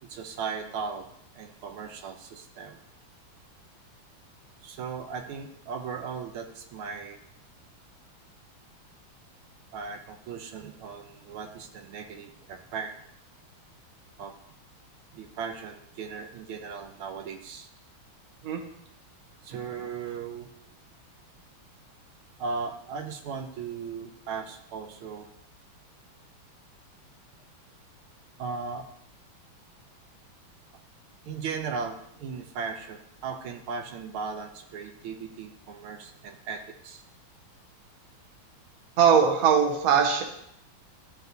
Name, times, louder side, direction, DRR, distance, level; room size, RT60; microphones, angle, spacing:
voice 1, 0.0-1.1 1.3-2.8 4.6-7.2 9.7-12.9 14.2-14.3 15.1-17.7 19.4-20.5 22.4-25.3 28.4-28.9 31.2-37.0, right 5 dB, 80° right, 5 dB, 1.5 m, -37 dB
voice 2, 39.0-40.2, right 7 dB, 55° right, 3 dB, 1.1 m, -20 dB
11.5 x 4.0 x 2.6 m, 0.76 s
omnidirectional pair, 2.3 m